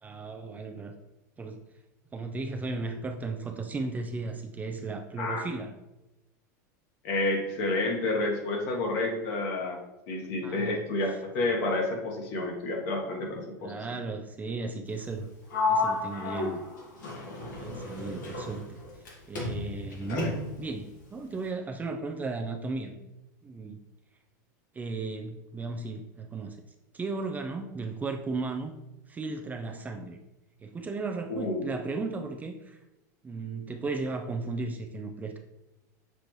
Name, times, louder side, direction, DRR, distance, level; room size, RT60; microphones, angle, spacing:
voice 1, 0.0-0.9 1.4-1.6 2.1-5.7 10.4-10.8 13.6-15.3 15.7-16.6 17.6-18.8 19.3-20.3 20.6-23.0 23.4-23.8 24.7-26.6 26.9-28.8 29.1-30.2 30.6-32.8 33.2-35.4, right 3 dB, 15° right, 4 dB, 0.4 m, -35 dB
voice 2, 7.0-9.8 10.1-14.0 20.1-20.3 31.3-31.7, left 2 dB, 60° left, 1 dB, 1.3 m, -30 dB
Sliding door, 15.5-19.1 19.4-20.7, left 3 dB, 90° left, 1.5 m, -32 dB
6.8 x 2.5 x 3.1 m, 0.96 s
supercardioid pair, 115°, 10 cm